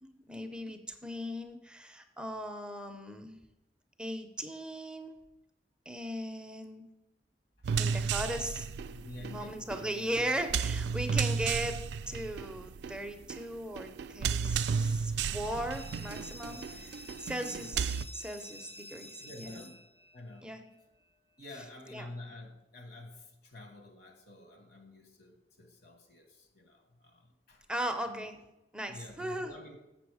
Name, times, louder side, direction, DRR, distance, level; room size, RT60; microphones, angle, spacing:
voice 1, 0.0-3.4 4.0-5.1 5.9-6.8 7.8-8.7 9.2-11.8 12.1-19.6 20.4-20.6 21.9-22.1 24.4-24.5 27.7-28.4 28.7-29.5, right 1 dB, 5° right, 6 dB, 0.5 m, -38 dB
sound 1, 7.6-18.0, right 6 dB, 70° right, 0.3 m, -33 dB
voice 2, 8.9-10.4 16.4-16.9 17.3-17.7 19.2-19.8 20.1-20.5 21.4-27.7 28.0-28.3 28.9-29.8, left 1 dB, 65° left, 4 dB, 1.3 m, -49 dB
sound 2, 15.7-21.1, left 1 dB, 35° left, 0.7 m, -51 dB
7.3 x 6.1 x 4.8 m, 0.94 s
head